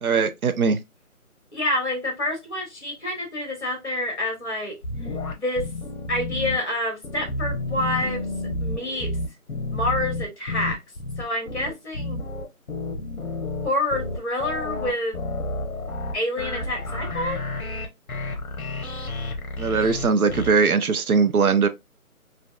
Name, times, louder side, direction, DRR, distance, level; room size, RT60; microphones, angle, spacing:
voice 1, 0.0-0.8 19.6-21.7, right 5 dB, 75° right, 0.6 m, -20 dB
voice 2, 1.5-4.8 5.3-5.7 6.1-8.3 8.6-9.1 9.7-10.8 11.2-12.2 13.6-15.2 16.1-17.4, left 1 dB, 50° left, 1.5 m, -27 dB
sound 1, 4.8-6.6 7.0-20.5, left 2 dB, 70° left, 1.0 m, -30 dB
3.2 x 2.5 x 2.3 m
figure-of-eight pair, 180°, 44 cm